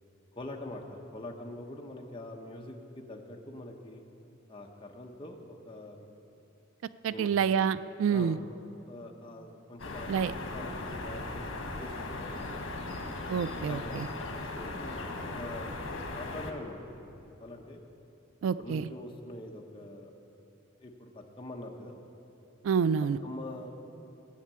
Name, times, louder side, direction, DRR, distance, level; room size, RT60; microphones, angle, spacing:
voice 1, 0.3-4.0 4.5-6.0 7.1-7.3 8.1-8.4 8.8-13.0 13.6-14.0 14.5-15.7 16.1-17.8 18.6-20.1 20.8-22.0 23.2-23.7, left 1 dB, 25° left, 0 dB, 1.0 m, -44 dB
voice 2, 7.0-8.4 10.1-10.3 13.3-14.1 18.4-18.9 22.6-23.2, right 7 dB, 75° right, 15 dB, 0.3 m, -28 dB
sound 1, 9.8-16.5, left 2 dB, 75° left, 1.4 m, -38 dB
14.5 x 6.6 x 8.5 m, 2.8 s
head